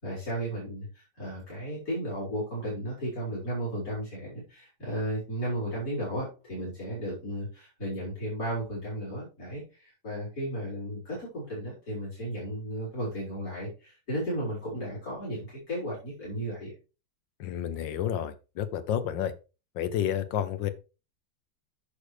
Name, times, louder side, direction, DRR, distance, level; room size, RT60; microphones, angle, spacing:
voice 1, 0.0-16.7, right 1 dB, 50° left, -8 dB, 5.0 m, -34 dB
voice 2, 17.4-19.3 19.7-20.7, left 10 dB, 90° left, 12 dB, 1.6 m, -30 dB
10.0 x 6.7 x 3.3 m, 0.32 s
omnidirectional pair, 1.9 m